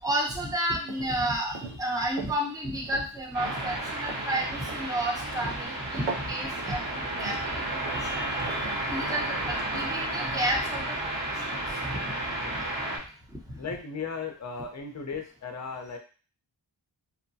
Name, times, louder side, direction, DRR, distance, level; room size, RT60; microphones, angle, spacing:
voice 1, 0.0-11.6 11.9-12.0 13.5-13.6, right 1 dB, 10° right, -1 dB, 0.7 m, -32 dB
sound 1, 0.8-10.3, right 4 dB, 85° right, 0.6 m, -42 dB
sound 2, 3.3-13.0, right 1 dB, 60° right, 1.2 m, -32 dB
voice 2, 13.6-16.0, left 5 dB, 35° left, 3 dB, 0.6 m, -36 dB
2.8 x 2.2 x 2.6 m, 0.37 s
wide cardioid pair, 45°, 48 cm